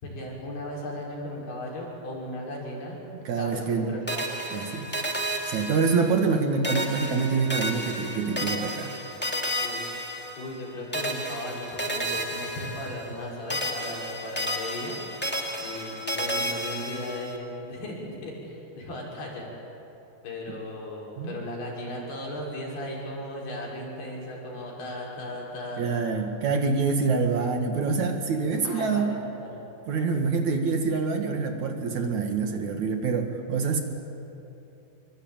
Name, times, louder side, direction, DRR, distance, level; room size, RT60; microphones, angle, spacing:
voice 1, 0.0-3.0 3.4-4.2 9.6-9.8 10.4-15.1 15.6-19.5 20.2-26.1 28.6-29.6, left 1 dB, 85° left, -2 dB, 7.5 m, -36 dB
voice 2, 3.2-4.0 4.5-4.9 5.5-8.9 21.2-21.3 25.8-29.1 29.9-33.8, right 4 dB, 55° right, 4 dB, 2.8 m, -26 dB
sound 1, 4.1-6.4 6.6-10.6 10.9-13.2 13.5-17.4, equal, 5° left, 1.5 m, -32 dB
25.5 x 23.5 x 9.0 m, 2.9 s
omnidirectional pair, 4.4 m